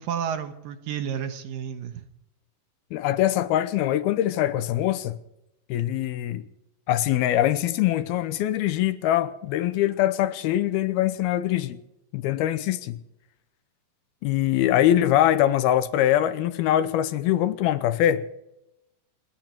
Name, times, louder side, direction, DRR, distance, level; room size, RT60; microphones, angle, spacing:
voice 1, 0.0-2.0, right 8 dB, 65° right, 2.6 m, -31 dB
voice 2, 2.9-5.2 5.7-6.4 6.9-11.8 12.1-13.0 14.2-18.3, left 12 dB, 80° left, 2.7 m, -23 dB
28.0 x 11.5 x 4.5 m
omnidirectional pair, 4.5 m